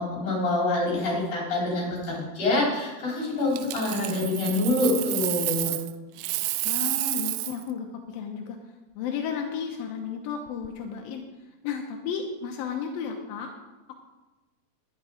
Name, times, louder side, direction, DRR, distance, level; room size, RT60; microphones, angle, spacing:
voice 1, 0.0-5.8, left 2 dB, 35° left, -4 dB, 4.8 m, -26 dB
Coin (dropping), 3.5-5.9 6.2-7.6 10.5-10.7, right 18 dB, 85° right, 2.9 m, -30 dB
voice 2, 6.6-8.6 9.0-11.2 11.6-13.5, left 7 dB, 80° left, 2 dB, 2.1 m, -33 dB
11.0 x 11.0 x 5.0 m, 1.1 s
omnidirectional pair, 5.4 m